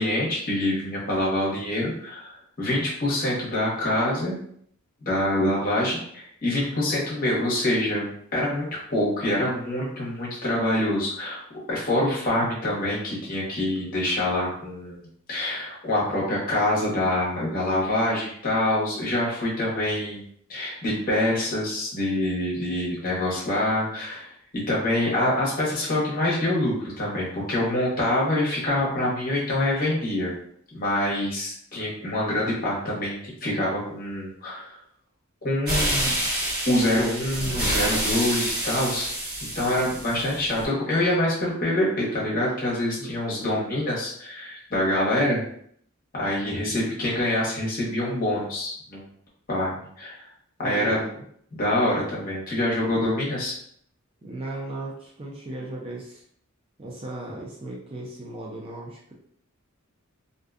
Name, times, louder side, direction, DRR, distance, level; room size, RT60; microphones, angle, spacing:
voice 1, 0.0-4.4 5.0-11.4 11.7-20.2 20.5-24.3 24.7-30.3 30.7-34.8 35.4-36.2 36.7-39.1 39.5-45.4 46.1-49.1 49.5-50.3 50.6-51.0 51.5-53.6, left 1 dB, 40° left, -5 dB, 0.8 m, -25 dB
sound 1, 35.7-40.6, right 1 dB, 45° right, 1.2 m, -28 dB
voice 2, 43.0-43.7 50.6-51.3 54.2-56.2 56.8-59.1, right 2 dB, 25° right, -3 dB, 0.3 m, -37 dB
2.5 x 2.1 x 2.4 m, 0.65 s
head